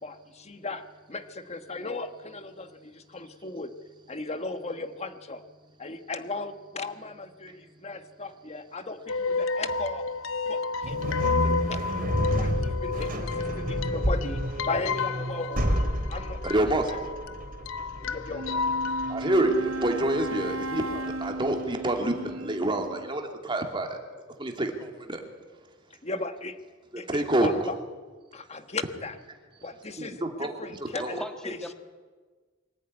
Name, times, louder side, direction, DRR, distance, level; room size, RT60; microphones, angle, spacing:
voice 1, 0.0-3.7 4.1-5.4 5.8-10.1 10.5-11.0 11.4-12.1 12.3-15.8 16.1-17.0 18.0-18.6 26.0-26.6 27.0-27.7 28.3-29.2 29.6-31.6, left 3 dB, 35° left, 9 dB, 1.3 m, -36 dB
sound 1, 9.1-19.1, left 4 dB, 75° left, 0.7 m, -31 dB
sound 2, 10.8-22.0, equal, 45° right, 3.5 m, -31 dB
voice 2, 16.4-16.9 19.1-24.0 24.4-25.2 27.1-27.5 30.0-30.6 31.0-31.2, right 1 dB, 25° right, 3 dB, 2.8 m, -27 dB
Wind instrument woodwind instrument, 18.3-23.2, right 2 dB, 90° right, 0.9 m, -35 dB
voice 3, 30.9-31.7, equal, 5° left, 5 dB, 2.0 m, -37 dB
24.0 x 14.0 x 9.8 m, 1.4 s
head